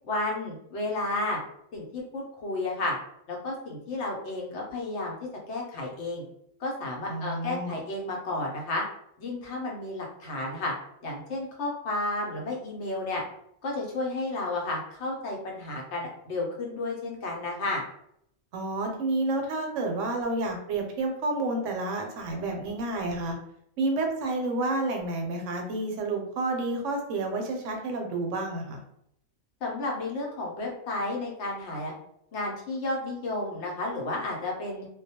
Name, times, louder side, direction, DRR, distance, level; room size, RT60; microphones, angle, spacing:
voice 1, 0.1-1.4 1.7-3.0 3.3-5.1 5.5-6.2 6.6-8.8 9.2-10.7 11.0-13.2 13.6-17.8 29.6-31.9 32.3-34.9, left 2 dB, 65° left, -1 dB, 0.9 m, -32 dB
voice 2, 7.1-7.8 18.5-23.3 23.8-28.8, right 2 dB, 75° right, 2 dB, 0.9 m, -30 dB
2.3 x 2.1 x 2.7 m, 0.73 s
omnidirectional pair, 1.3 m